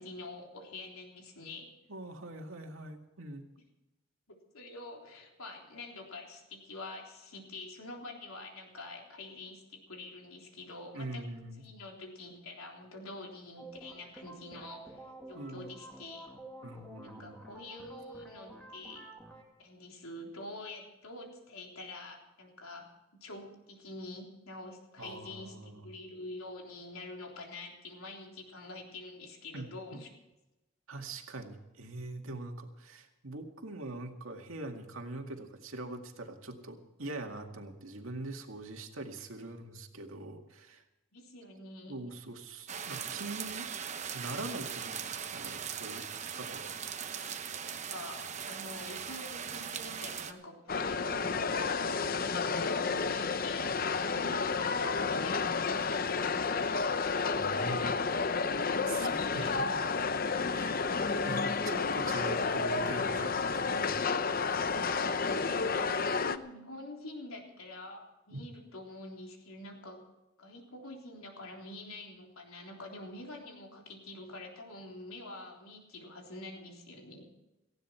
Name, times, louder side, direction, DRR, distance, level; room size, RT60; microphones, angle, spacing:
voice 1, 0.0-1.7 4.5-11.2 11.6-16.3 17.0-19.1 19.6-30.1 39.3-39.5 41.1-42.0 47.6-56.7 58.7-60.2 65.1-70.1 70.4-77.3, left 2 dB, 85° left, 1 dB, 3.7 m, -46 dB
voice 2, 1.9-3.5 10.9-11.6 15.3-15.7 16.6-17.3 25.0-25.9 29.5-30.0 30.9-40.8 41.9-43.7 44.1-46.7 57.3-57.9 58.9-59.7 60.5-60.9 61.2-64.4 68.3-68.4, right 2 dB, 75° right, 4 dB, 2.1 m, -43 dB
sound 1, 13.6-19.4, right 2 dB, 5° left, 2.3 m, -50 dB
sound 2, 42.7-50.3, right 7 dB, 35° right, 0.9 m, -40 dB
sound 3, 50.7-66.4, left 4 dB, 45° left, 0.7 m, -31 dB
18.5 x 15.5 x 4.5 m, 0.97 s
head